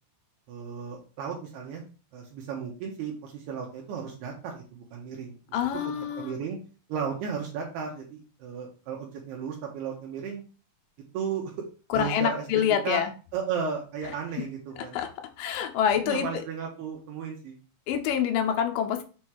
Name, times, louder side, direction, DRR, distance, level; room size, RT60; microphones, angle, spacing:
voice 1, 0.5-1.8 2.1-6.6 6.9-10.4 11.1-11.5 11.9-13.1 13.3-15.0 16.1-17.6, right 6 dB, 75° right, -1 dB, 2.8 m, -35 dB
voice 2, 5.5-6.3 11.9-13.1 14.9-15.1 15.4-16.3 17.9-19.0, left 8 dB, 90° left, 5 dB, 1.9 m, -26 dB
7.3 x 3.1 x 4.7 m, 0.35 s
omnidirectional pair, 4.9 m